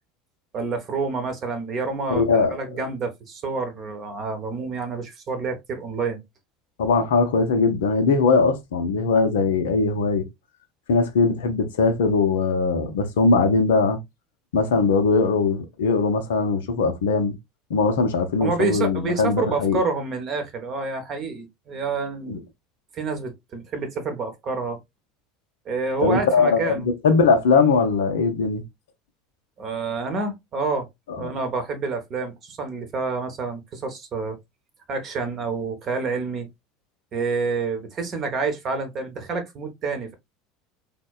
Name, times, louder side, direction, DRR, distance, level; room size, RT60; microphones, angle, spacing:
voice 1, 0.5-6.2 18.4-22.4 22.9-24.8 25.7-26.9 29.6-30.9 31.2-34.4 34.9-36.5 37.1-40.1, right 4 dB, 40° right, 0.8 m, -28 dB
voice 2, 2.1-2.9 6.8-10.3 10.9-14.0 14.5-17.3 17.7-19.8 22.3-22.4 26.0-28.6 31.1-31.3, left 4 dB, 65° left, 0.6 m, -20 dB
3.5 x 2.1 x 2.3 m
figure-of-eight pair, 70°, 0 cm